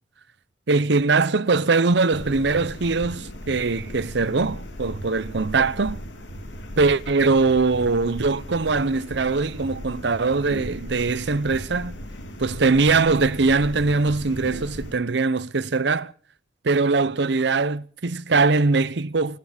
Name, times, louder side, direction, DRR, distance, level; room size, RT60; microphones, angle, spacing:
voice 1, 0.7-6.0 6.8-12.0 12.4-16.1 16.6-19.4, right 3 dB, 70° right, 0.7 m, -21 dB
sound 1, 2.1-14.9, equal, 85° left, 2.5 m, -37 dB
27.0 x 9.7 x 5.1 m
head